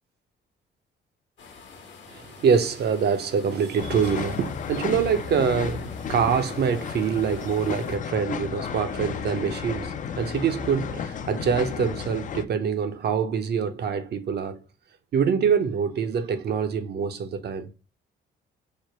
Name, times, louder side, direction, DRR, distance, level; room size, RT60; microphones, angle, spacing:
sound 1, 1.4-8.0, left 5 dB, 65° left, 1.1 m, -47 dB
voice 1, 2.1-14.6 15.1-17.7, right 6 dB, 55° right, 0.6 m, -25 dB
sound 2, 3.8-12.4, left 7 dB, 40° left, 0.4 m, -33 dB
3.2 x 2.1 x 4.2 m
cardioid pair, 90°, 20 cm